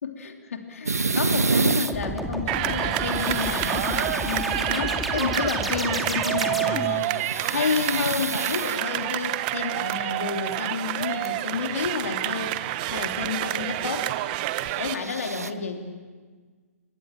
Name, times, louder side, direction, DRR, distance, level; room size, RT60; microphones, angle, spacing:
voice 1, 0.0-7.0 7.5-14.1 14.8-15.9, left 5 dB, 65° left, 4 dB, 3.2 m, -30 dB
sound 1, 0.9-1.9 2.8-4.8 6.8-9.2 9.8-9.9 10.9-11.0 11.2-11.3 14.6-15.5, right 3 dB, 85° right, 1.4 m, -29 dB
sound 2, 1.9-7.1, right 1 dB, ahead, 2.3 m, -30 dB
sound 3, 2.5-15.0, right 15 dB, 35° right, 1.2 m, -28 dB
28.0 x 23.5 x 7.5 m, 1.5 s
figure-of-eight pair, 130°, 8 cm